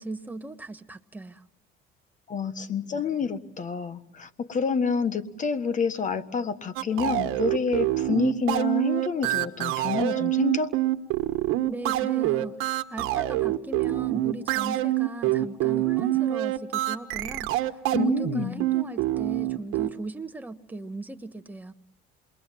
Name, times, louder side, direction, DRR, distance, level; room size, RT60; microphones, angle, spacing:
voice 1, 0.0-1.4 11.7-17.5 17.9-21.7, right 2 dB, 10° right, 7 dB, 1.3 m, -38 dB
voice 2, 2.3-10.8 17.9-18.6, left 6 dB, 35° left, 11 dB, 1.5 m, -28 dB
sound 1, 6.8-19.9, right 15 dB, 75° right, 1.3 m, -25 dB
28.0 x 22.0 x 7.5 m, 0.78 s
cardioid pair, 110°, 21 cm